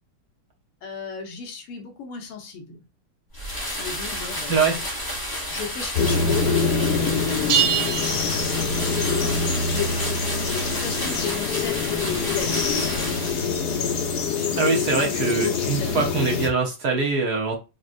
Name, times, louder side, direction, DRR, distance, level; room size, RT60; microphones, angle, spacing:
voice 1, 0.8-2.8 3.7-4.6 5.5-14.0 14.3-16.1, left 6 dB, 85° left, 3 dB, 2.0 m, -35 dB
sound 1, 3.3-13.7, equal, 25° left, 0.5 m, -31 dB
sound 2, 5.9-16.5, left 5 dB, 60° left, 1.2 m, -25 dB
sound 3, 7.5-9.1, right 8 dB, 80° right, 0.8 m, -25 dB
voice 2, 14.6-17.6, right 4 dB, 55° right, 0 dB, 1.4 m, -23 dB
5.1 x 3.0 x 2.5 m, 0.28 s
omnidirectional pair, 2.4 m